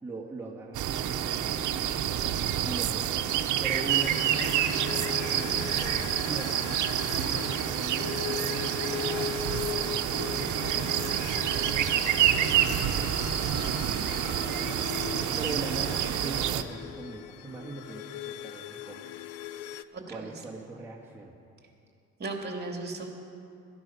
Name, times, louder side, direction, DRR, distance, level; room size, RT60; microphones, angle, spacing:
voice 1, 0.0-2.0 2.6-6.6 6.9-10.0 10.2-19.1 20.1-21.3, right 2 dB, 10° right, -5 dB, 1.7 m, -41 dB
sound 1, 0.7-16.6, right 10 dB, 75° right, 0.8 m, -28 dB
sound 2, 3.9-19.8, left 10 dB, 85° left, 0.6 m, -39 dB
voice 2, 19.9-20.3 22.2-23.1, right 3 dB, 35° right, 1 dB, 2.5 m, -36 dB
17.0 x 13.5 x 5.6 m, 2.5 s
cardioid pair, 90°, 30 cm